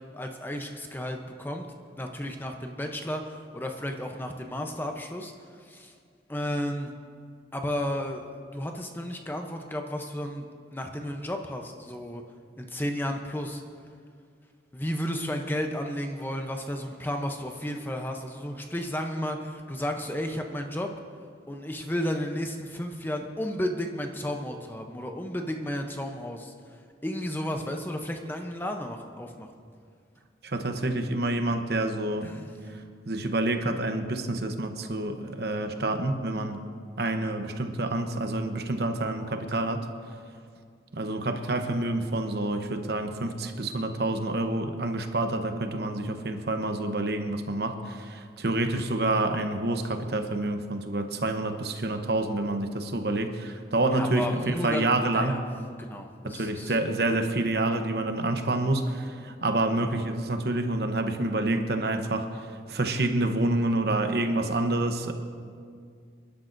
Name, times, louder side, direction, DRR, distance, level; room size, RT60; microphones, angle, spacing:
voice 1, 0.1-1.7 1.9-5.3 5.6-5.9 6.3-6.9 7.5-10.5 10.7-12.2 12.6-13.6 14.7-20.9 21.5-26.5 27.0-29.5 32.2-32.5 53.9-54.9 55.1-55.4 55.8-56.8, equal, 10° left, 4 dB, 0.7 m, -33 dB
voice 2, 30.5-32.3 33.1-36.6 37.0-39.8 40.9-55.4 56.2-62.3 62.7-65.1, right 2 dB, 60° right, 6 dB, 0.9 m, -28 dB
26.5 x 12.0 x 2.6 m, 2.2 s
head